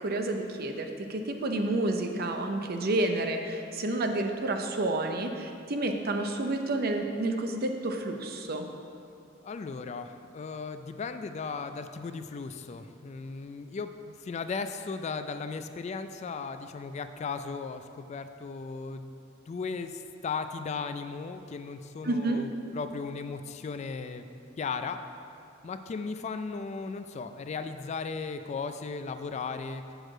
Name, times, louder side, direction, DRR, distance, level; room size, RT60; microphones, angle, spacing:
voice 1, 0.0-8.7 22.0-22.4, right 2 dB, 50° right, 5 dB, 0.6 m, -30 dB
voice 2, 9.4-19.1 19.5-24.2 24.6-25.0 25.6-29.8, left 4 dB, 35° left, 9 dB, 0.3 m, -36 dB
7.6 x 6.4 x 4.9 m, 2.5 s
head